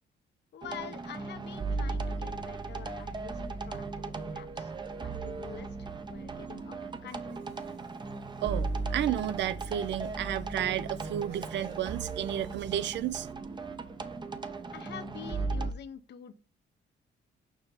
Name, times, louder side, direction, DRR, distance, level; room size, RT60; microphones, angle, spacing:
voice 1, 0.5-7.4 14.7-16.3, left 8 dB, 60° left, 0.7 m, -47 dB
sound 1, 0.6-15.7, right 3 dB, 25° right, 0.6 m, -37 dB
voice 2, 8.4-13.3, right 11 dB, 65° right, 0.5 m, -32 dB
6.9 x 2.8 x 5.3 m
cardioid pair, 90°, 20 cm